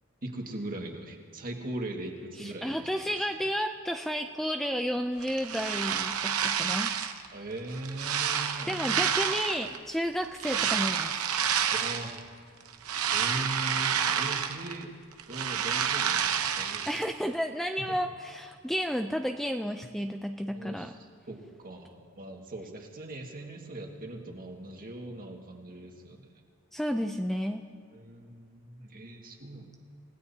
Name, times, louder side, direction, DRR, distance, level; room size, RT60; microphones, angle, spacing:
voice 1, 0.2-3.3 7.3-9.0 11.7-12.2 13.1-15.0 15.3-16.9 17.8-18.0 20.5-20.9 21.3-26.3 27.9-29.8, right 1 dB, 40° right, 1 dB, 1.9 m, -40 dB
voice 2, 2.4-6.9 8.7-11.2 16.9-20.9 26.7-27.6, equal, ahead, 5 dB, 0.4 m, -32 dB
sound 1, 5.2-7.3 7.7-9.8 10.4-12.2 12.6-14.8 15.1-17.0, right 8 dB, 85° right, 0.9 m, -29 dB
29.0 x 16.5 x 2.8 m, 2.2 s
head